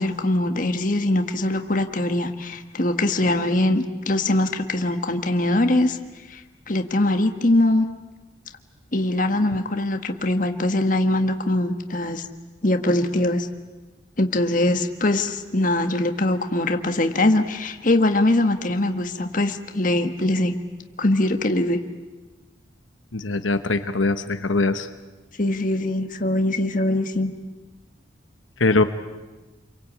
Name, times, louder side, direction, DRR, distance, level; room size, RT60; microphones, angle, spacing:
voice 1, 0.0-6.0 6.3-6.4 6.7-7.8 8.9-12.3 12.6-13.5 14.2-20.5 21.0-21.8 25.4-27.3, left 1 dB, 45° left, 6 dB, 1.6 m, -22 dB
voice 2, 23.1-24.9 28.6-28.8, left 3 dB, 90° left, 9 dB, 1.2 m, -21 dB
29.5 x 23.5 x 8.7 m, 1.2 s
head